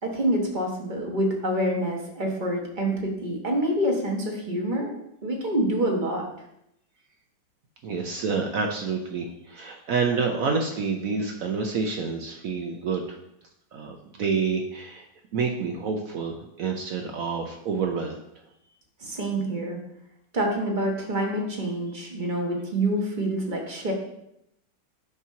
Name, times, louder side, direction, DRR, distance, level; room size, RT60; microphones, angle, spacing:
voice 1, 0.0-4.9 5.2-6.2 19.0-19.8 20.3-23.9, right 1 dB, 30° right, 0 dB, 1.2 m, -26 dB
voice 2, 7.8-13.2 13.7-15.0 15.3-18.2, right 5 dB, 65° right, 2 dB, 0.9 m, -28 dB
8.3 x 2.9 x 5.6 m, 0.80 s
omnidirectional pair, 2.0 m